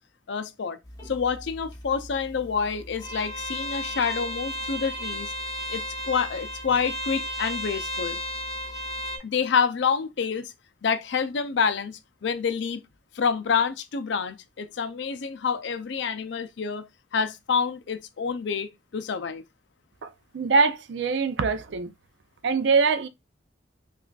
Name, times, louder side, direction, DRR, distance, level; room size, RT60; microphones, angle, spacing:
voice 1, 0.3-0.8 1.0-5.3 5.7-8.2 9.2-10.5 10.8-12.8 13.2-16.8 17.1-19.4, left 6 dB, 70° left, 0.4 m, -27 dB
sound 1, 0.8-9.2, equal, 20° left, 1.0 m, -34 dB
voice 2, 20.0-21.9 22.4-23.1, right 4 dB, 70° right, 0.4 m, -23 dB
5.6 x 2.4 x 2.3 m
head